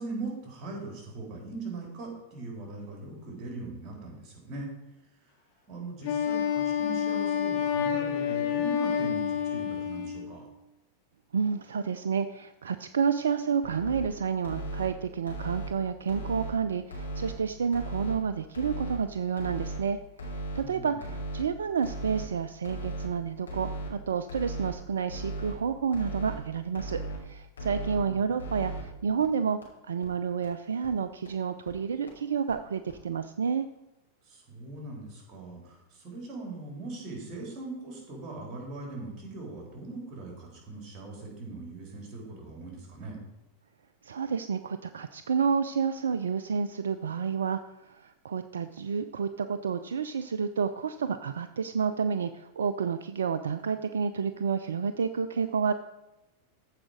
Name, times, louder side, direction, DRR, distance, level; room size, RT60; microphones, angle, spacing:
voice 1, 0.0-4.7 5.7-10.4 20.6-21.0 34.3-43.2, right 3 dB, 30° right, 0 dB, 3.9 m, -40 dB
Wind instrument woodwind instrument, 6.0-10.4, left 8 dB, 50° left, 1.2 m, -28 dB
voice 2, 11.3-20.0 20.5-29.6 29.8-33.7 44.0-47.6 47.9-55.7, right 6 dB, 65° right, 11 dB, 0.4 m, -30 dB
sound 1, 13.6-14.0 14.4-14.9 15.3-15.7 16.1-16.5 16.9-17.3 17.7-18.1 18.5-19.0 19.4-19.8 20.2-20.6 21.0-21.4 21.8-22.3 22.6-23.1 23.5-23.9 24.3-24.7 25.1-25.5 25.9-26.4 26.7-27.2 27.6-28.0 28.4-28.8 29.2-29.3 29.6-29.7 30.0-30.1 30.4-30.5 30.8-30.9 31.2-31.3 31.7-31.8 32.1-32.2 32.5-32.6 32.9-33.0, right 2 dB, 75° left, 2.9 m, -36 dB
14.5 x 4.9 x 4.9 m, 0.95 s
figure-of-eight pair, 90°, 0 cm